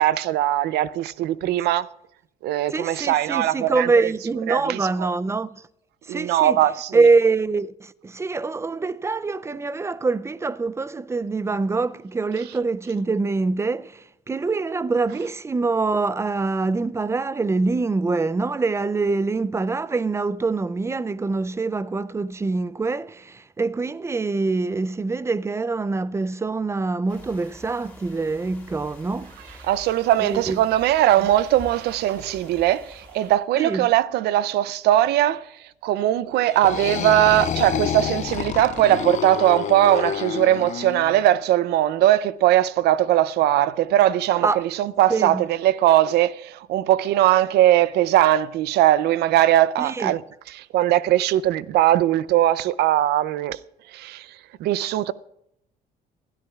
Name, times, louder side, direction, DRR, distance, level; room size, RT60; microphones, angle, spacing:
voice 1, 0.0-1.9 2.4-3.9 4.5-5.1 6.1-7.0 29.6-35.5 35.8-50.2 50.5-53.6 53.9-54.3 54.6-55.1, right 13 dB, 75° right, 0.5 m, -20 dB
voice 2, 2.7-5.6 6.1-6.6 6.9-29.3 30.2-30.6 33.6-33.9 44.4-44.6 45.1-45.4 49.8-50.1, right 3 dB, 15° right, 0.4 m, -24 dB
sound 1, 27.1-33.4, left 1 dB, 10° left, 3.0 m, -46 dB
sound 2, 36.5-41.3, left 10 dB, 45° left, 0.4 m, -28 dB
21.0 x 13.0 x 2.4 m
cardioid pair, 110°, 17 cm